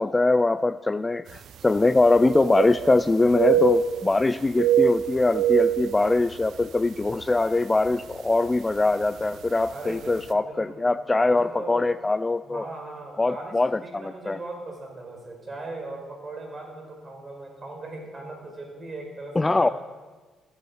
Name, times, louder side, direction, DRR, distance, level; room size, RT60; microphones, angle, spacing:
voice 1, 0.0-12.6 13.2-14.4 19.4-19.7, left 2 dB, 20° left, 14 dB, 0.3 m, -22 dB
sound 1, 1.4-1.5 1.8-3.1 3.3-4.2 4.5-6.6 7.0-7.2 7.9-8.1 9.2-9.3 9.6-9.7, right 8 dB, 70° right, 0.6 m, -24 dB
voice 2, 9.7-10.8 11.3-11.9 12.4-19.7, right 2 dB, 35° right, 1 dB, 4.6 m, -39 dB
14.5 x 8.1 x 7.2 m, 1.3 s
cardioid pair, 90°, 0 cm